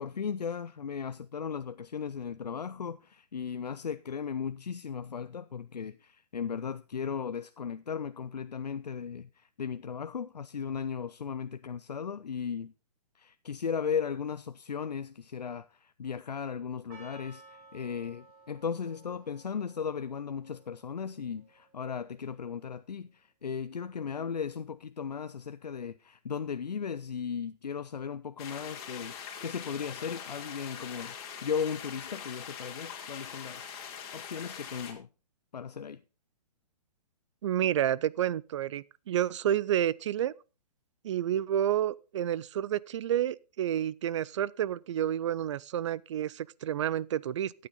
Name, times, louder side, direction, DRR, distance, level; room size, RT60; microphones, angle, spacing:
voice 1, 0.0-12.7 13.2-35.1 35.5-36.0, left 6 dB, 85° left, 0.5 m, -36 dB
Percussion, 16.9-21.9, right 3 dB, 30° right, 5.1 m, -56 dB
sound 1, 28.4-34.9, left 7 dB, 40° left, 2.5 m, -43 dB
voice 2, 37.4-40.3 41.0-47.5, right 11 dB, 50° right, 0.5 m, -30 dB
13.0 x 8.6 x 4.0 m
figure-of-eight pair, 130°, 20 cm